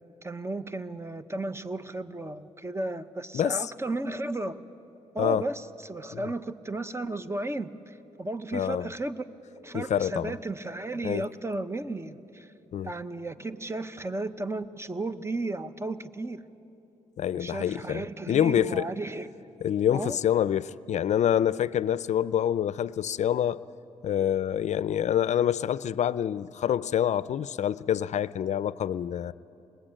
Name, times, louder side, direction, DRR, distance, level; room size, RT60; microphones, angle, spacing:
voice 1, 0.2-4.6 5.1-9.2 9.6-12.5 12.8-16.4 17.3-19.3 19.9-20.2, right 2 dB, 20° right, 1.0 m, -34 dB
voice 2, 3.3-3.7 5.2-5.5 6.1-6.2 8.5-8.9 9.7-10.3 11.0-11.3 12.7-12.9 17.2-18.9 19.6-23.6 24.0-29.3, left 10 dB, 65° left, 0.4 m, -26 dB
22.5 x 20.0 x 8.8 m
cardioid pair, 70°, 13 cm